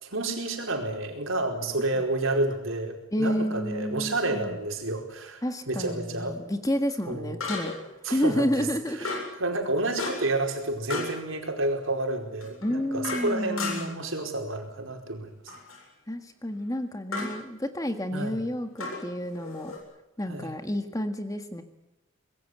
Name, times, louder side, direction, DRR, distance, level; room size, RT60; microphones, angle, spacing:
voice 1, 0.0-6.3 7.1-7.4 8.0-8.7 9.0-15.3 18.1-18.4 20.3-20.5, right 2 dB, 70° right, 3 dB, 4.8 m, -30 dB
voice 2, 3.1-4.6 5.4-7.7 8.1-9.2 12.6-14.1 16.1-19.7 20.2-21.6, equal, 15° left, 7 dB, 1.7 m, -30 dB
sound 1, 3.7-3.8 7.4-7.9 9.0-9.4 10.0-10.4 10.9-11.2 12.4-14.0 15.5-15.8 17.1-17.4 18.8-19.8, left 3 dB, 80° left, 7.7 m, -34 dB
25.0 x 21.0 x 8.1 m, 0.92 s
head